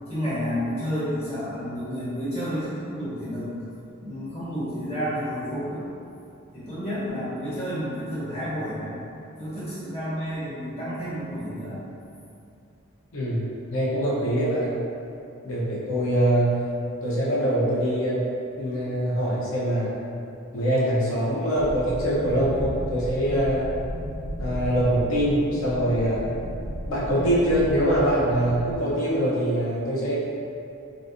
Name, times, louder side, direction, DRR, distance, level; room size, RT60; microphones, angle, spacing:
voice 1, 0.1-3.5 4.0-5.8 6.5-9.0 9.4-11.8, equal, 30° left, -11 dB, 1.2 m, -30 dB
voice 2, 13.1-13.4 13.7-14.7 15.4-16.6 17.0-18.3 18.6-19.9 20.5-23.7 24.4-26.3 26.9-30.2, equal, 65° left, -7 dB, 0.7 m, -23 dB
sound 1, 21.6-28.7, equal, 75° right, 0.5 m, -34 dB
3.8 x 2.5 x 2.5 m, 2.6 s
head